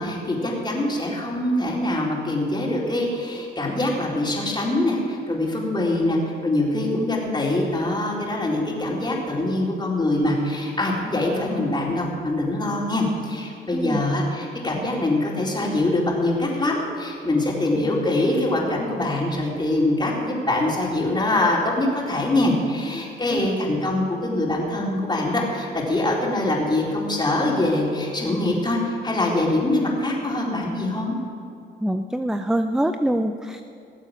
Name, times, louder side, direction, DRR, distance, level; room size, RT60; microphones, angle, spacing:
voice 1, 0.0-31.2, left 1 dB, 20° left, -3 dB, 4.1 m, -24 dB
voice 2, 13.7-14.0 23.3-23.5 31.8-33.6, right 1 dB, 5° right, 8 dB, 0.6 m, -24 dB
18.5 x 7.5 x 7.6 m, 2.6 s
cardioid pair, 90°, 20 cm